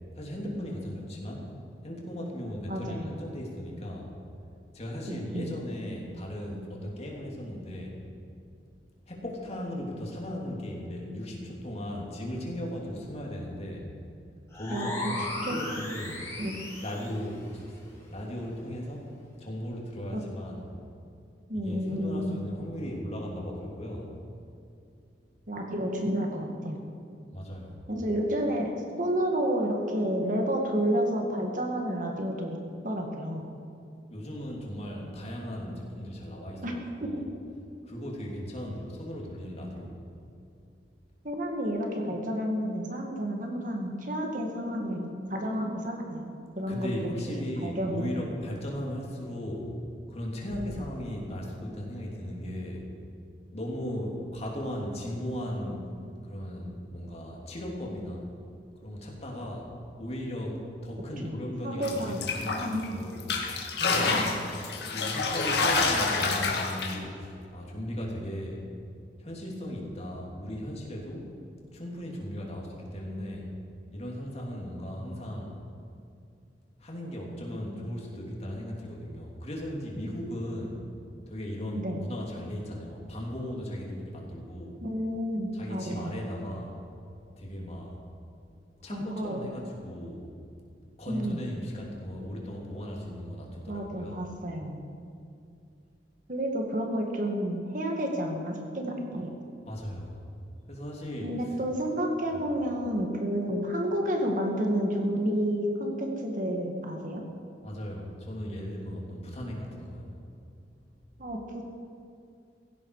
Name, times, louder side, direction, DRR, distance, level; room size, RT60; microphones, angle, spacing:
voice 1, 0.1-1.5 1.8-4.1 4.7-7.9 9.1-13.9 14.5-16.2 16.8-19.1 19.4-20.6 21.5-24.1 27.3-27.8 34.1-37.2 37.8-39.9 46.7-49.7 50.1-52.8 53.5-55.9 56.2-58.3 58.8-59.7 60.0-63.2 63.8-64.4 64.9-68.6 69.2-71.3 71.7-73.5 73.9-75.5 76.8-80.8 81.3-84.8 85.5-86.7 87.4-87.9 88.8-90.3 91.0-94.2 99.6-100.2 100.7-101.4 102.3-102.4 107.6-110.1, equal, 35° left, -2 dB, 3.2 m, -37 dB
voice 2, 2.7-3.2 5.1-5.5 14.7-15.6 16.4-16.5 20.1-20.2 21.5-22.4 25.5-26.9 27.9-28.7 29.0-32.6 32.8-33.4 36.6-36.7 37.0-37.1 41.2-47.1 47.6-48.3 61.2-61.4 61.6-62.2 62.6-62.9 81.7-82.0 84.8-86.1 88.9-89.4 91.1-91.5 93.7-94.8 96.3-99.3 101.2-107.2 111.2-111.6, equal, 50° right, 2 dB, 2.0 m, -30 dB
sound 1, 14.5-17.2, left 2 dB, 15° left, 3.8 m, -36 dB
sound 2, 61.8-62.9 63.2-67.0, left 4 dB, 65° left, 2.1 m, -28 dB
17.5 x 16.0 x 4.9 m, 2.4 s
head